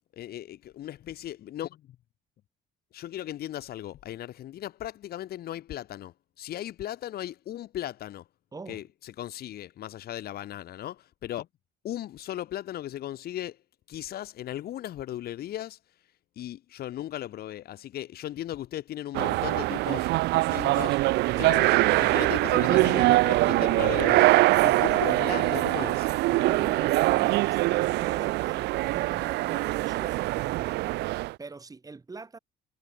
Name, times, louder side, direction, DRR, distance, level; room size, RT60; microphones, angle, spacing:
voice 1, 0.2-1.8 2.9-8.3 8.7-11.5 11.8-13.6 13.9-15.8 16.3-21.0 21.4-24.3 24.6-26.1, left 12 dB, 65° left, 6.8 m, -37 dB
sound 1, 19.1-31.3, right 19 dB, 85° right, 0.8 m, -23 dB
voice 2, 26.3-32.4, right 3 dB, 20° right, 6.3 m, -43 dB
cardioid pair, 110°, 17 cm